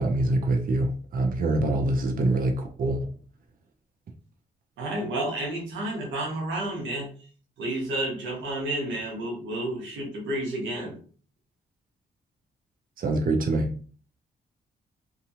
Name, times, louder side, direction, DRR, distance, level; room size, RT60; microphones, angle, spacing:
voice 1, 0.0-3.1 13.0-13.7, right 2 dB, 45° right, 3 dB, 0.5 m, -25 dB
voice 2, 4.8-7.1 7.6-11.0, right 1 dB, 90° right, -1 dB, 0.9 m, -30 dB
2.7 x 2.3 x 2.7 m, 0.43 s
supercardioid pair, 60°, 19 cm